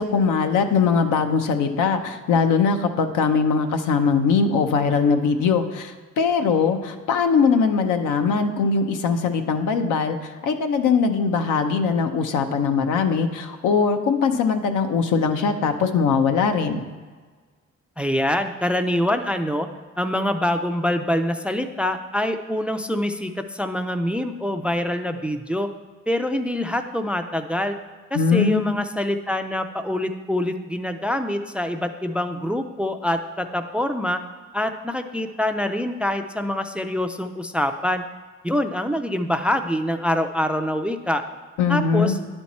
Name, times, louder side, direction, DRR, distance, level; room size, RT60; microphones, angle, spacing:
voice 1, 0.0-16.8 28.1-28.8 41.6-42.1, left 5 dB, 85° left, 7 dB, 0.7 m, -21 dB
voice 2, 18.0-19.7 20.0-25.7 26.1-27.7 28.1-34.2 34.5-38.0 38.4-41.2 41.7-42.2, left 1 dB, 5° right, 8 dB, 0.3 m, -25 dB
10.0 x 4.5 x 4.2 m, 1.5 s
cardioid pair, 90°, 30 cm